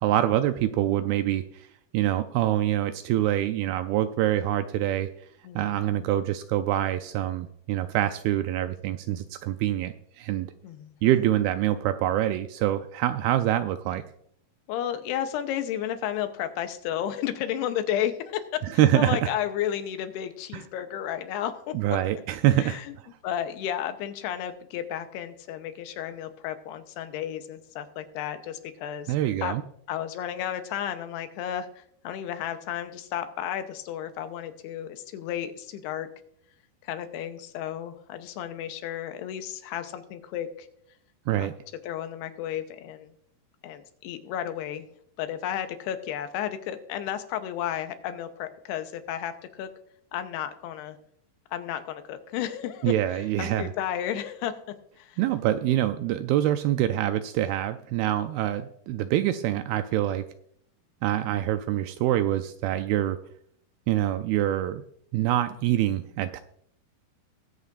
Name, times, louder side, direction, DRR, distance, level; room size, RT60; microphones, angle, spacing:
voice 1, 0.0-1.7 1.9-5.1 5.6-10.5 11.0-14.0 18.8-19.3 20.5-20.6 21.7-22.8 29.1-29.6 41.3-41.5 52.8-53.7 55.2-60.3 61.0-63.2 63.9-64.8 65.1-66.4, right 13 dB, 85° right, 10 dB, 2.2 m, -25 dB
voice 2, 5.4-6.1 10.6-11.2 14.7-18.4 18.9-21.7 22.6-22.9 23.2-29.1 29.4-29.5 29.9-36.1 36.8-40.7 41.3-41.5 41.8-43.1 43.6-44.9 45.2-49.7 50.1-51.0 51.5-54.5 55.0-55.2, left 10 dB, 90° left, 9 dB, 2.8 m, -33 dB
21.0 x 8.3 x 2.5 m, 0.67 s
omnidirectional pair, 4.7 m